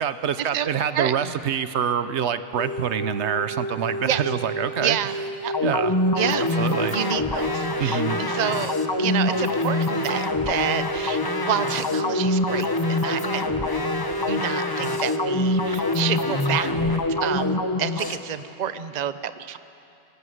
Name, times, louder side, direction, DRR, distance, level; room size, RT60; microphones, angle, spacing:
voice 1, 0.0-5.0 5.6-5.9 6.6-7.0 7.8-8.2, right 8 dB, 80° right, 12 dB, 1.0 m, -26 dB
voice 2, 0.9-1.3 4.1-4.3 4.8-5.1 5.4-5.5 6.2-6.5 6.9-13.5 14.3-19.6, right 9 dB, 45° right, 12 dB, 0.8 m, -29 dB
sound 1, 2.6-17.6, right 1 dB, 80° left, 1.5 m, -32 dB
sound 2, 5.5-18.2, left 2 dB, 20° left, 1.0 m, -25 dB
26.5 x 20.0 x 7.9 m, 2.9 s
omnidirectional pair, 1.1 m